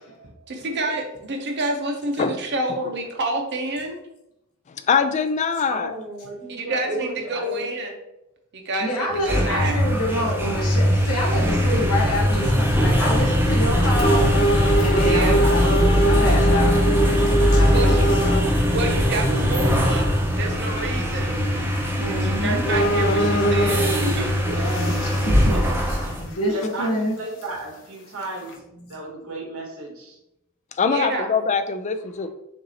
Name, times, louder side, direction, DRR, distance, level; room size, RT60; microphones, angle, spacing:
voice 1, 0.5-4.0 6.5-7.9 8.5-9.8 15.0-15.4 17.7-18.1 18.7-21.4 22.1-24.3 30.9-31.3, right 2 dB, 55° right, 3 dB, 0.8 m, -28 dB
voice 2, 4.7-5.9 18.3-18.4 30.8-32.3, left 5 dB, 35° left, 9 dB, 0.3 m, -23 dB
voice 3, 5.7-7.7 15.4-16.4 22.6-22.9 24.4-24.9 25.4-25.7 26.5-28.5 28.9-30.2, right 2 dB, 70° right, 0 dB, 1.2 m, -33 dB
voice 4, 8.8-15.6 16.1-18.0 22.0-22.6 24.8-25.5 26.2-27.2 28.7-29.0, equal, 80° left, -2 dB, 1.1 m, -27 dB
sound 1, 9.1-26.3, equal, 10° right, 0.6 m, -21 dB
sound 2, 11.6-11.7 12.2-12.6 13.2-13.3 13.9-18.5 19.2-19.3 21.7-21.8 22.2-22.3 22.6-24.1 24.5-26.4 26.6-26.7 27.4-27.5 28.2-28.5, right 1 dB, 60° left, 1.0 m, -23 dB
6.7 x 2.7 x 2.8 m, 0.86 s
head